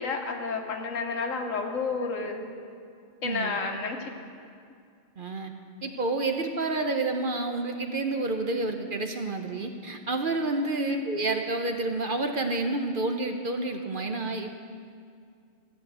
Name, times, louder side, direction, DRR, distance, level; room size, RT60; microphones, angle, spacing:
voice 1, 0.0-2.5 3.2-4.1 10.9-11.0, left 4 dB, 85° left, 4 dB, 1.6 m, -31 dB
voice 2, 3.2-3.6 5.2-5.5 5.8-14.5, right 2 dB, 50° right, 5 dB, 0.9 m, -29 dB
14.0 x 7.8 x 7.9 m, 2.3 s
omnidirectional pair, 1.3 m